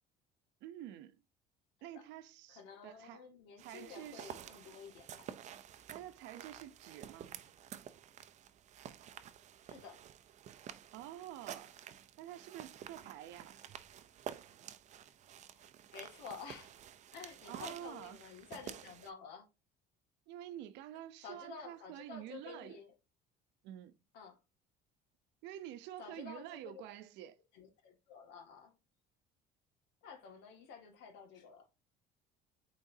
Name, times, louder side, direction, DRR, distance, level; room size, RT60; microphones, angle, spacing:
voice 1, 0.6-1.2 1.8-3.3 3.6-4.4 5.9-7.3 10.9-11.8 12.2-13.6 17.4-18.2 20.3-22.8 23.6-24.0 25.4-27.4, right 12 dB, 75° right, 0.8 m, -48 dB
voice 2, 2.5-5.3 9.7-10.0 15.9-16.7 17.1-19.5 21.2-22.9 24.1-24.4 26.0-26.8 27.5-28.7 30.0-31.6, left 6 dB, 75° left, 2.1 m, -51 dB
sound 1, 3.6-19.1, right 10 dB, 40° right, 0.6 m, -51 dB
8.7 x 3.9 x 2.8 m
cardioid pair, 145°, 18 cm